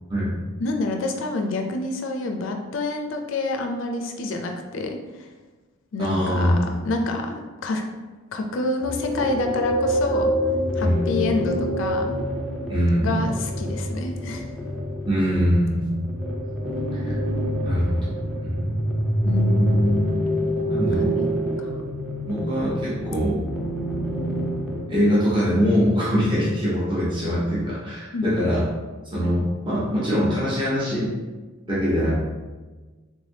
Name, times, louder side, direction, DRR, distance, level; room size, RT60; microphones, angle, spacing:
voice 1, 0.6-5.3 5.9-6.6 6.9-7.8 8.3-10.3 10.8-12.1 13.0-14.5 19.2-20.2 20.9-21.3 21.6-21.7 28.1-28.3, left 2 dB, 65° left, 4 dB, 0.4 m, -27 dB
voice 2, 6.0-6.8 10.8-11.2 12.7-13.2 15.1-15.9 16.9-17.1 17.6-18.0 18.4-18.8 20.7-21.1 22.3-23.4 24.9-28.6 29.1-31.1 31.7-32.1, equal, 25° right, -9 dB, 0.9 m, -23 dB
sound 1, 8.8-24.8, equal, ahead, 0.4 m, -26 dB
3.4 x 3.3 x 2.6 m, 1.3 s
head